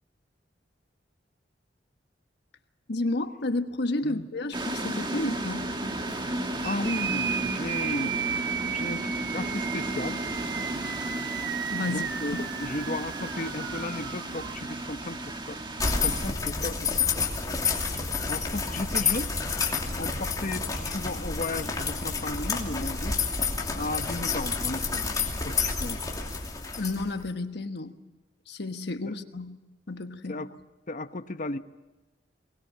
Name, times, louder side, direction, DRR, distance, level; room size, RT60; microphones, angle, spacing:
voice 1, 2.9-5.7 11.7-12.0 12.3-12.5 26.8-28.0 28.5-29.6 29.9-30.4, left 2 dB, 60° left, 8 dB, 1.3 m, -31 dB
sound 1, 4.5-16.3, right 1 dB, 25° right, 1.5 m, -33 dB
voice 2, 6.6-10.2 11.8-15.6 16.0-17.3 18.3-19.3 20.0-23.3 23.7-26.0 29.1-29.2 30.3-30.5 30.9-31.6, left 2 dB, 45° left, 9 dB, 1.0 m, -35 dB
sound 2, 6.6-14.5, right 9 dB, 60° right, 0.9 m, -34 dB
sound 3, 15.8-27.3, left 4 dB, 20° left, 2.8 m, -29 dB
22.5 x 20.0 x 8.7 m, 1.1 s
head